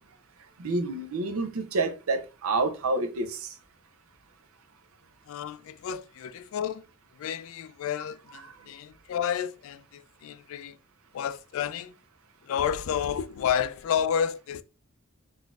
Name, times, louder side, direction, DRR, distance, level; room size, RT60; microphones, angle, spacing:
voice 1, 0.6-3.5 8.4-8.5, right 3 dB, 85° right, 0.5 m, -28 dB
voice 2, 5.3-6.8 7.2-10.8 11.1-11.9 12.4-14.6, left 8 dB, 70° left, 0.3 m, -31 dB
3.7 x 2.6 x 2.3 m
head